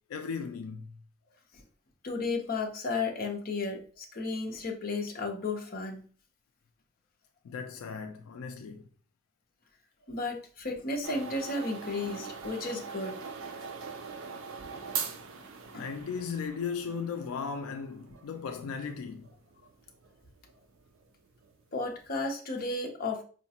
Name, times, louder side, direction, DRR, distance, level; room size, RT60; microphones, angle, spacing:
voice 1, 0.1-1.0 7.4-8.9 15.7-19.3, left 6 dB, 85° left, 0.3 m, -36 dB
voice 2, 2.0-6.0 10.1-13.2 14.7-14.8 15.7-15.8 21.7-23.2, left 3 dB, 45° left, 0.7 m, -33 dB
sound 1, 11.0-22.1, right 6 dB, 65° right, 0.5 m, -42 dB
4.7 x 2.1 x 2.7 m
head